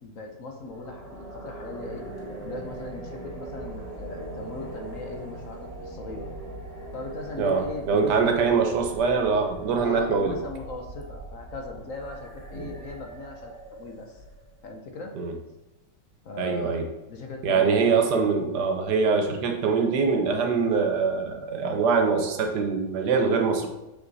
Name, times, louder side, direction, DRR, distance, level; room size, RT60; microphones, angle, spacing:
voice 1, 0.0-2.0 2.4-6.3 6.9-8.4 9.8-14.2 14.6-15.1 16.2-16.8 17.1-17.9, left 2 dB, 55° left, 3 dB, 1.1 m, -39 dB
sound 1, 0.6-14.7, right 1 dB, 10° right, 2.7 m, -41 dB
voice 2, 7.4-10.3 12.6-12.7 15.2-15.3 16.4-16.8 17.4-23.7, right 5 dB, 75° right, 4 dB, 1.5 m, -23 dB
6.4 x 5.7 x 4.0 m, 0.97 s
omnidirectional pair, 1.8 m